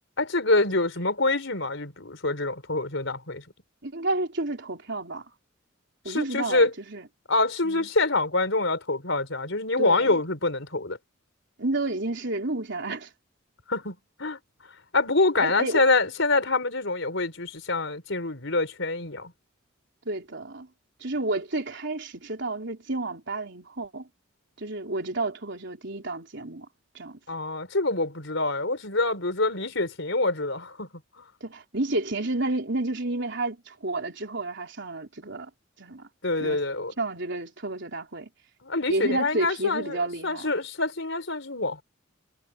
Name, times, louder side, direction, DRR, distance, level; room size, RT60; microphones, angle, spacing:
voice 1, 0.2-3.4 6.1-6.7 7.3-11.0 13.7-14.4 14.9-19.3 27.3-30.9 36.2-36.9 38.6-41.8, left 2 dB, 65° left, 5.0 m, -26 dB
voice 2, 3.8-5.2 6.0-7.1 7.6-7.9 9.8-10.2 11.6-13.1 15.4-15.8 20.1-20.7 21.0-24.1 24.6-26.7 26.9-27.2 31.4-35.5 35.8-36.1 36.4-36.6 37.0-38.3 38.9-40.5, right 2 dB, 60° right, 4.1 m, -31 dB
head